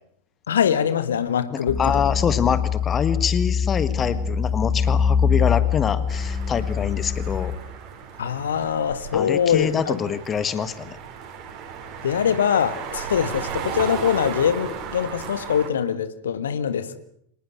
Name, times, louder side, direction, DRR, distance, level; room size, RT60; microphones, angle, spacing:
voice 1, 0.5-1.8 8.2-10.0 12.0-17.0, left 8 dB, 65° left, 13 dB, 1.7 m, -23 dB
voice 2, 1.5-7.5 9.1-11.0, left 7 dB, 20° left, 14 dB, 1.6 m, -25 dB
sound 1, 1.7-7.6, left 7 dB, ahead, 3.8 m, -23 dB
sound 2, 6.1-15.7, right 7 dB, 40° right, 5.0 m, -35 dB
25.5 x 19.5 x 8.2 m, 0.69 s
figure-of-eight pair, 90°, 0 cm